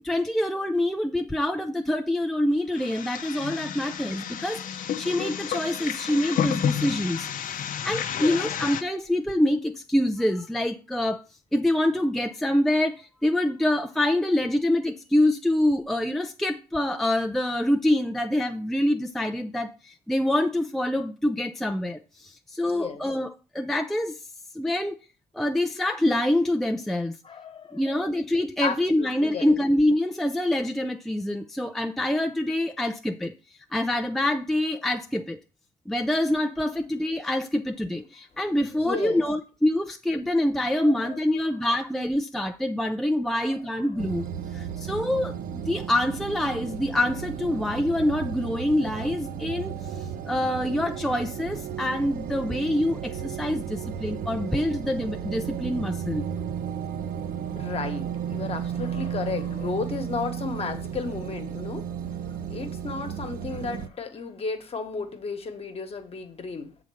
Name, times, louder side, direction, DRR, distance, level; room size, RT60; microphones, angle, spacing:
voice 1, 0.0-11.2 11.5-24.2 24.5-25.0 25.3-27.2 27.7-33.3 33.7-35.4 35.9-44.3 44.5-56.2, left 1 dB, ahead, 0.4 m, -26 dB
sound 1, 2.7-8.8, left 8 dB, 55° left, 0.7 m, -31 dB
voice 2, 22.7-23.0 27.2-27.8 28.6-29.6 38.7-39.2 40.8-41.5 43.3-43.5 44.0-44.1 57.5-61.9 62.5-66.7, left 4 dB, 35° left, 1.3 m, -34 dB
sound 2, 44.0-63.9, right 8 dB, 55° right, 0.8 m, -34 dB
7.1 x 3.9 x 6.3 m
cardioid pair, 110°, 17 cm